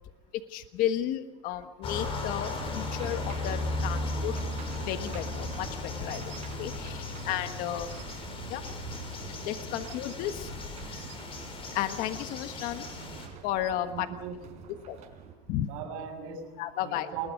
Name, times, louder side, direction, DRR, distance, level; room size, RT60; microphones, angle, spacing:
voice 1, 0.5-4.3 4.8-6.3 6.6-8.0 8.5-8.6 9.4-10.5 10.9-11.1 11.7-12.9 13.4-14.1 14.9-15.0 15.5-15.7 16.6-17.1, left 12 dB, 60° left, 8 dB, 1.4 m, -33 dB
sound 1, 1.8-13.3, left 3 dB, 35° left, 6.7 m, -36 dB
sound 2, 2.6-15.3, right 7 dB, 45° right, 5.1 m, -46 dB
voice 2, 13.8-14.4 15.6-16.4 16.8-17.3, right 8 dB, 75° right, 5 dB, 6.7 m, -38 dB
29.0 x 21.0 x 5.2 m, 1.2 s
supercardioid pair, 125°, 16 cm